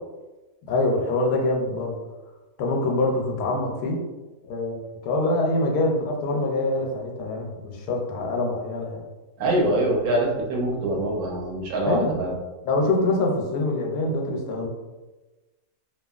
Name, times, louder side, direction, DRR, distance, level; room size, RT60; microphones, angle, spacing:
voice 1, 0.7-2.0 2.6-4.0 4.5-9.0 11.9-12.1 12.6-14.7, left 2 dB, 90° left, 1 dB, 1.2 m, -25 dB
voice 2, 9.4-12.3, right 1 dB, 75° right, -2 dB, 1.1 m, -24 dB
2.8 x 2.4 x 2.3 m, 1.1 s
omnidirectional pair, 1.6 m